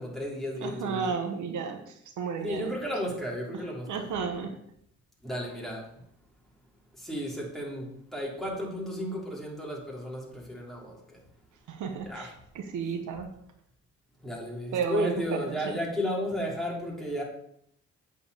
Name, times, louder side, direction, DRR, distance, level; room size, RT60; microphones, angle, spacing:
voice 1, 0.0-1.1 2.4-3.9 5.2-5.8 7.0-10.9 12.0-12.3 14.2-17.2, equal, ahead, -4 dB, 3.4 m, -33 dB
voice 2, 0.6-2.7 3.9-4.5 11.7-13.3 14.7-15.8, right 6 dB, 75° right, 5 dB, 1.3 m, -33 dB
8.3 x 4.8 x 6.8 m, 0.71 s
cardioid pair, 90°, 30 cm